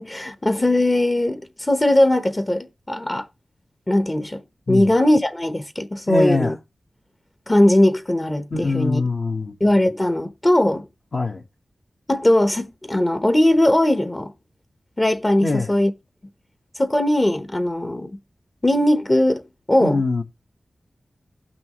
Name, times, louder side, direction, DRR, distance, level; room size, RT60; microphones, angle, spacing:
voice 1, 0.0-3.3 3.9-4.4 4.7-6.5 7.5-9.0 9.6-10.8 12.1-14.3 15.0-15.9 16.8-18.1 18.6-19.4 19.7-20.0, left 1 dB, 25° left, 1.0 m, -19 dB
voice 2, 6.1-6.5 8.5-9.6 11.1-11.4 15.4-15.7 19.8-20.2, left 3 dB, 55° left, 1.5 m, -23 dB
17.0 x 6.1 x 3.0 m
cardioid pair, 55°, 0 cm